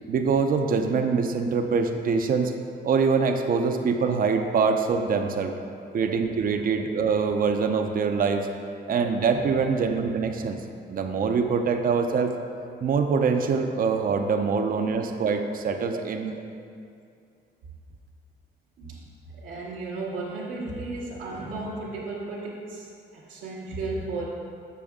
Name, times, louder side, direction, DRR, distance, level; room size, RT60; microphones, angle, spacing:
voice 1, 0.1-2.5 2.8-5.5 5.9-8.5 8.9-10.6 10.9-12.3 12.8-16.3, right 5 dB, 45° right, 5 dB, 0.6 m, -24 dB
voice 2, 18.8-24.3, right 3 dB, 85° right, -8 dB, 1.1 m, -35 dB
6.9 x 6.8 x 3.6 m, 2.4 s
cardioid pair, 90°, 20 cm